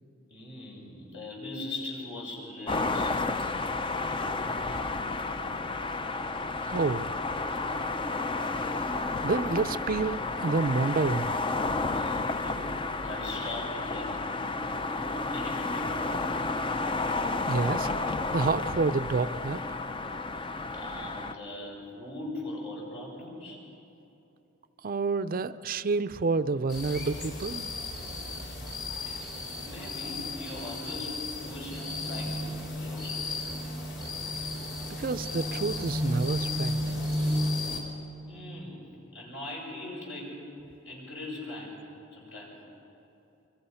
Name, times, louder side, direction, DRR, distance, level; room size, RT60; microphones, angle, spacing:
voice 1, 0.3-3.1 11.9-12.7 13.0-14.2 14.9-15.9 20.7-23.6 29.0-29.3 29.6-31.2 31.4-32.4 32.8-33.4 38.3-40.4 40.8-41.8 42.1-42.5, left 2 dB, 65° left, -3 dB, 7.9 m, -40 dB
sound 1, 2.7-21.3, left 3 dB, 25° left, 0.6 m, -31 dB
voice 2, 6.7-7.1 9.2-11.6 17.5-17.9 18.3-19.8 24.8-27.7 35.0-36.8, right 4 dB, 45° right, 12 dB, 0.5 m, -29 dB
sound 2, 26.7-37.8, left 1 dB, 50° left, 4.3 m, -33 dB
28.0 x 24.0 x 5.7 m, 2.9 s
head